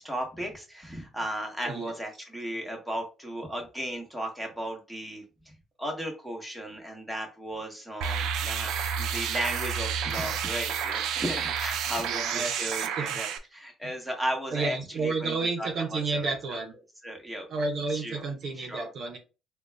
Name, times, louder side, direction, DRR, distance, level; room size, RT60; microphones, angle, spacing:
voice 1, 0.0-5.5 5.8-8.7 9.0-16.6 17.0-17.5 17.9-18.2 18.5-18.9, equal, ahead, 1 dB, 1.1 m, -35 dB
sound 1, 8.0-13.4, right 7 dB, 80° right, 0.4 m, -30 dB
voice 2, 12.0-13.2 13.8-13.9 14.5-16.7 17.5-19.2, right 3 dB, 55° right, 4 dB, 0.8 m, -31 dB
3.8 x 2.3 x 3.3 m, 0.31 s
cardioid pair, 120°, 0 cm